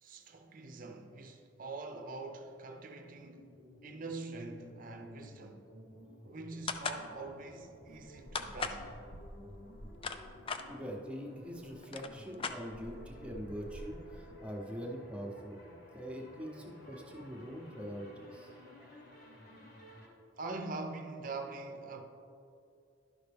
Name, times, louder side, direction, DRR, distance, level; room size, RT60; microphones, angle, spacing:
voice 1, 0.0-3.5 3.8-5.6 6.2-8.9 20.4-22.0, right 3 dB, 45° right, 0.7 m, -44 dB
sound 1, 3.2-20.1, left 1 dB, 55° left, 1.5 m, -55 dB
sound 2, 6.7-7.0 8.3-8.8 9.7-10.6 11.5-11.6 11.8-13.0, left 5 dB, 30° left, 0.4 m, -37 dB
sound 3, 7.9-10.5 11.4-11.5 11.8-14.5, equal, 85° left, 0.7 m, -51 dB
voice 2, 10.7-15.6 15.9-18.5 18.8-19.0, equal, 5° right, 0.9 m, -43 dB
11.5 x 5.7 x 3.5 m
head